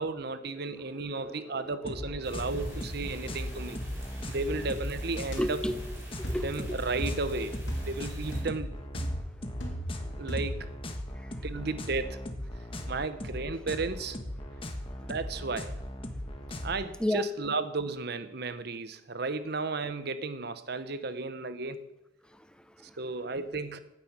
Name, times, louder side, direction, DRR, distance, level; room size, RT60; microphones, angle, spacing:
voice 1, 0.0-3.8 4.3-5.6 6.4-8.7 10.1-10.7 11.4-12.2 12.9-14.2 15.1-15.8 16.6-21.9 23.0-23.8, right 3 dB, 55° right, 0.9 m, -34 dB
voice 2, 0.6-2.0 3.2-3.4 4.1-4.2 5.4-5.8 6.1-6.8 11.1-11.4 12.7-12.9 15.0-15.1 17.0-17.2 22.3-23.0, left 1 dB, 5° left, 0.7 m, -36 dB
sound 1, 1.8-16.9, left 1 dB, 30° left, 1.4 m, -39 dB
sound 2, 2.2-8.4, equal, 15° right, 4.5 m, -41 dB
sound 3, 5.3-5.5 6.2-6.5 7.0-7.3 7.7-8.0 8.3-8.6 8.9-10.0 10.3-10.7, equal, 70° left, 3.1 m, -35 dB
16.0 x 9.5 x 6.1 m
head